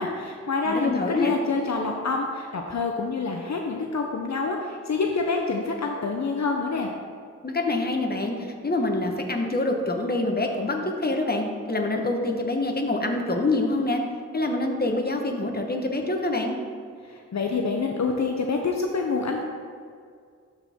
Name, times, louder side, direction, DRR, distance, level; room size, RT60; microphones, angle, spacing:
voice 1, 0.0-6.9 17.0-19.4, left 4 dB, 65° left, 2 dB, 0.7 m, -27 dB
voice 2, 0.7-1.3 7.4-14.0 14.3-16.6, left 2 dB, 30° left, 2 dB, 1.1 m, -26 dB
12.0 x 4.3 x 3.6 m, 2.2 s
cardioid pair, 45°, 30 cm